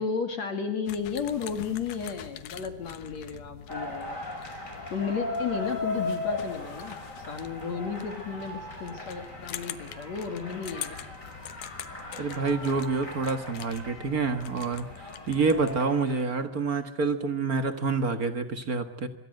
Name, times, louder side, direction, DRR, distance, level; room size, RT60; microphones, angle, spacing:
voice 1, 0.0-4.2 4.9-10.9, left 6 dB, 50° left, 6 dB, 3.3 m, -33 dB
sound 1, 0.9-15.8, left 11 dB, 85° left, 3.0 m, -45 dB
sound 2, 3.7-16.2, left 2 dB, 20° left, 5.8 m, -38 dB
voice 2, 12.2-19.1, right 4 dB, 50° right, 8 dB, 1.0 m, -28 dB
25.5 x 23.0 x 7.8 m, 0.75 s
omnidirectional pair, 4.1 m